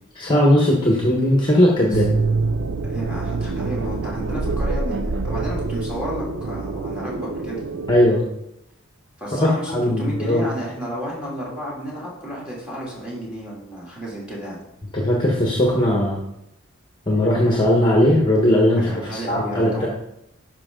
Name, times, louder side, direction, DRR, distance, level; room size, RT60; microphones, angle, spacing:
voice 1, 0.2-2.1 7.9-8.2 9.3-10.5 14.9-16.2 17.1-19.9, left 1 dB, 20° left, -2 dB, 1.2 m, -18 dB
sound 1, 1.9-8.1, right 3 dB, 80° right, 0.7 m, -25 dB
voice 2, 2.9-7.6 9.2-14.6 18.7-19.9, equal, 5° right, -5 dB, 2.6 m, -32 dB
10.5 x 5.3 x 3.8 m, 0.82 s
head